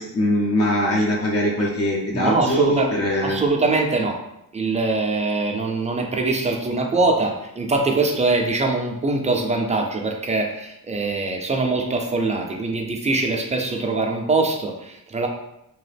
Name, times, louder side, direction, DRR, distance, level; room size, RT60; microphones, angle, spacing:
voice 1, 0.0-3.4, equal, 45° left, -3 dB, 0.6 m, -22 dB
voice 2, 2.1-4.2 4.5-15.3, right 3 dB, 20° right, 2 dB, 0.3 m, -23 dB
2.8 x 2.3 x 3.3 m, 0.82 s
cardioid pair, 130°, 34 cm